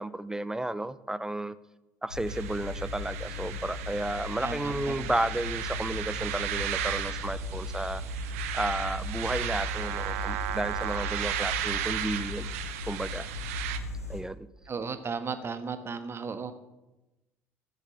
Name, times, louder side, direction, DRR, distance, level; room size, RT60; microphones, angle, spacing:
voice 1, 0.0-1.5 2.0-8.0 8.5-12.5 12.9-13.3 14.1-14.5, right 1 dB, 10° right, 16 dB, 0.7 m, -32 dB
sound 1, 2.1-14.2, left 2 dB, 90° left, 1.5 m, -37 dB
sound 2, 2.3-13.8, right 12 dB, 70° right, 0.9 m, -35 dB
voice 2, 4.4-5.1 14.7-16.5, right 5 dB, 35° right, 10 dB, 1.4 m, -35 dB
13.0 x 8.3 x 7.0 m, 1.0 s
figure-of-eight pair, 55°, 8 cm